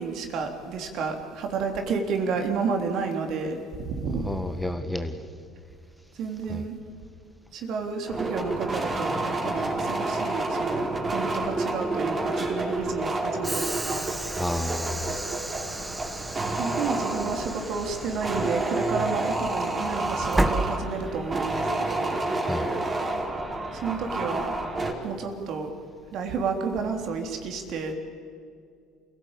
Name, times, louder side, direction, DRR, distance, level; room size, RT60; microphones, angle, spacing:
voice 1, 0.0-4.3 6.2-6.7 7.5-14.1 16.6-22.2 23.7-24.5 25.0-25.7 26.1-27.9, right 5 dB, 55° right, 4 dB, 3.4 m, -31 dB
voice 2, 4.2-5.2 6.5-6.6 14.4-15.1 22.4-22.7, left 1 dB, 5° left, 8 dB, 1.8 m, -31 dB
sound 1, 8.1-24.9, right 2 dB, 30° right, 4.7 m, -29 dB
Train / Sliding door, 13.4-21.4, right 1 dB, 15° right, 1.7 m, -33 dB
28.0 x 16.5 x 8.9 m, 2.3 s
hypercardioid pair, 60°, 0 cm